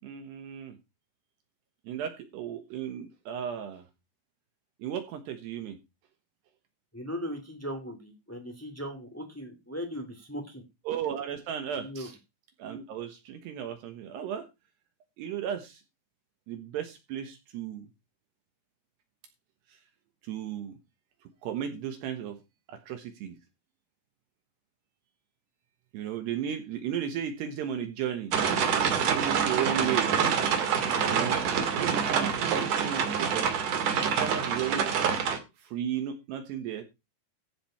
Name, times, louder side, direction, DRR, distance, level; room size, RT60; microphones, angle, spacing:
voice 1, 0.0-0.8 1.9-3.8 4.8-5.8 10.9-12.2 12.6-14.5 15.2-15.8 16.5-17.9 20.3-20.7 21.4-22.4 22.7-23.4 25.9-28.3 29.1-30.1 31.0-31.4 31.7-33.5 34.2-35.2 35.6-36.8, right 9 dB, 70° right, 6 dB, 3.1 m, -34 dB
voice 2, 6.9-10.6 11.8-12.1, equal, 20° left, 4 dB, 0.3 m, -38 dB
sound 1, 28.3-35.4, right 7 dB, 55° right, 2.8 m, -26 dB
15.0 x 5.2 x 5.6 m, 0.25 s
omnidirectional pair, 5.4 m